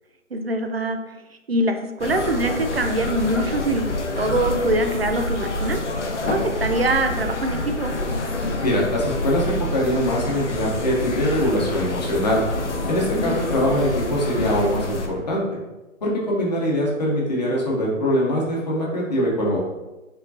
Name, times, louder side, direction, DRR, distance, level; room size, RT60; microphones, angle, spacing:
voice 1, 0.3-1.0 1.5-5.8 6.2-7.9 13.1-13.4, right 1 dB, 50° right, 6 dB, 0.4 m, -24 dB
sound 1, 2.0-15.1, left 2 dB, 60° left, 0.7 m, -27 dB
voice 2, 8.6-12.4 12.9-15.4 16.0-19.6, equal, 30° left, -3 dB, 0.9 m, -23 dB
4.6 x 3.8 x 2.7 m, 1.1 s
hypercardioid pair, 165°, 41 cm